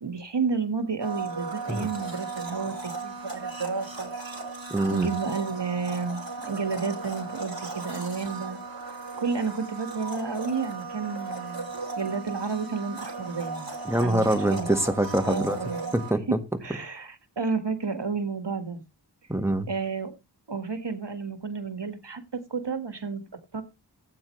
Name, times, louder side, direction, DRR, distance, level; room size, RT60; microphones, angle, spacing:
voice 1, 0.0-4.1 4.9-8.6 9.2-13.7 14.0-14.7 15.2-15.9 16.3-16.4 16.6-18.8 19.7-20.1 20.5-23.2 23.5-23.6, right 5 dB, 75° right, 8 dB, 1.8 m, -31 dB
Domestic sounds home sounds, 1.0-16.1, right 3 dB, 55° right, 3.8 m, -36 dB
voice 2, 4.7-5.1 13.8-15.6 15.9-16.4 19.3-19.7, right 1 dB, 5° right, 7 dB, 1.6 m, -24 dB
16.5 x 8.7 x 3.2 m, 0.26 s
wide cardioid pair, 50°, 42 cm